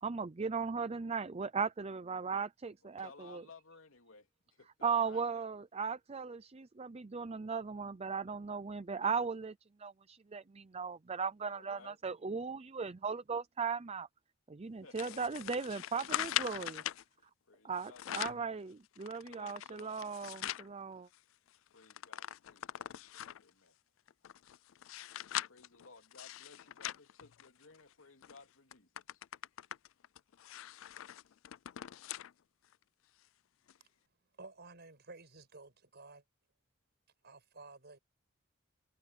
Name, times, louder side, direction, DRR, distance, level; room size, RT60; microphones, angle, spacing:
voice 1, 0.0-3.4 4.8-9.5 9.8-14.1 14.5-16.8 17.6-21.1, right 5 dB, 30° right, 0.5 m, -37 dB
voice 2, 2.8-5.5 11.4-12.0 14.8-15.5 17.4-18.0 18.3-18.5 19.3-20.0 21.7-23.0 23.4-23.8 24.2-24.3 25.5-29.2, left 3 dB, 90° left, 3.1 m, -58 dB
sound 1, 15.0-17.0 17.8-18.5 19.0-20.7 21.1-21.2 21.5-23.5 24.1-27.8 28.2-28.4 28.7-32.3 32.7-32.8 33.7-33.8, left 12 dB, 70° left, 0.4 m, -41 dB
voice 3, 34.3-36.2 37.2-38.0, right 3 dB, 55° right, 5.7 m, -53 dB
head